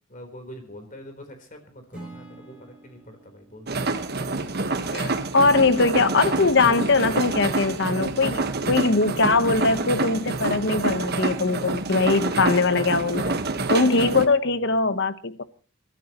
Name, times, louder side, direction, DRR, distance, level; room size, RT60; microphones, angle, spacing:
voice 1, 0.1-3.9 8.6-8.7, equal, 40° left, 4.0 m, -44 dB
Acoustic guitar / Strum, 1.9-5.1, right 2 dB, 5° right, 5.9 m, -47 dB
sound 1, 3.7-14.3, right 3 dB, 50° right, 1.4 m, -27 dB
voice 2, 4.9-13.4 13.7-15.4, left 3 dB, 55° left, 1.1 m, -21 dB
29.5 x 13.0 x 3.0 m
head